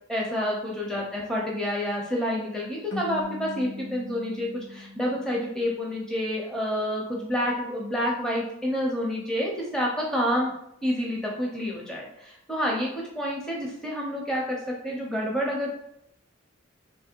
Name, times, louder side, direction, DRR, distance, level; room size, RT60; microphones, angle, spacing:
voice 1, 0.1-10.5 10.8-15.7, equal, 5° left, -3 dB, 0.7 m, -28 dB
sound 1, 2.9-6.1, left 3 dB, 55° left, 1.0 m, -40 dB
3.5 x 3.1 x 4.4 m, 0.77 s
head